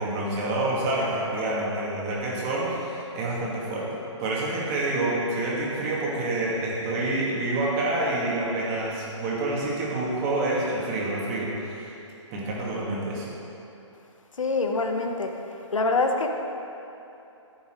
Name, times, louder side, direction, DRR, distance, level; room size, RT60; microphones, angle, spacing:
voice 1, 0.0-11.9 12.3-13.2, right 2 dB, 30° right, -5 dB, 2.6 m, -28 dB
voice 2, 14.4-15.3 15.7-16.3, left 3 dB, 85° left, 4 dB, 1.2 m, -25 dB
14.0 x 6.8 x 4.9 m, 2.9 s
hypercardioid pair, 140°, 16 cm